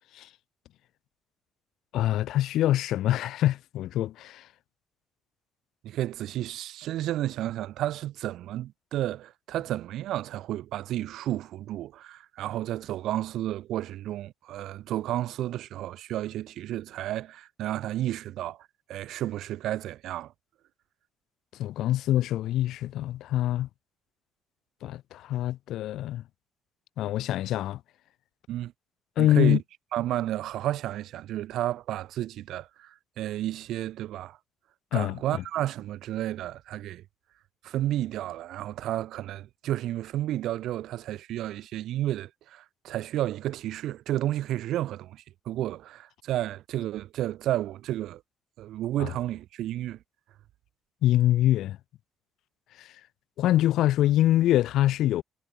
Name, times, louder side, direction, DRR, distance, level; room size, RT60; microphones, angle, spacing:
voice 1, 1.9-4.5 21.6-23.7 24.8-26.2 27.0-27.8 29.2-29.6 34.9-35.4 49.0-49.1 51.0-51.8 52.8-52.9 53.4-55.2, left 13 dB, 85° left, 0.4 m, -25 dB
voice 2, 5.8-18.6 18.9-20.3 28.5-28.7 29.2-29.6 29.9-34.4 34.9-37.0 37.6-48.2 48.6-50.0, right 13 dB, 85° right, 0.9 m, -32 dB
cardioid pair, 90°, 0 cm